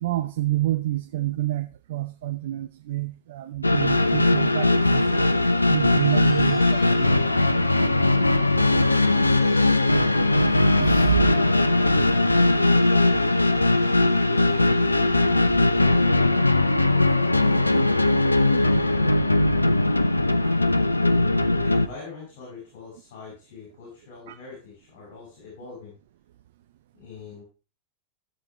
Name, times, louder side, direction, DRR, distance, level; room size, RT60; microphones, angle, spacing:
voice 1, 0.0-7.6 10.8-11.2 11.7-11.8 18.5-18.6 20.4-20.6 24.3-24.4, right 15 dB, 55° right, 0.6 m, -29 dB
sound 1, 3.6-21.9, left 2 dB, 85° left, 0.6 m, -20 dB
sound 2, 3.9-17.9, equal, 5° left, 4.2 m, -49 dB
voice 2, 18.5-19.2 21.5-26.0 26.9-27.4, left 5 dB, 55° left, 5.8 m, -43 dB
15.0 x 6.9 x 3.4 m
figure-of-eight pair, 90°, 0 cm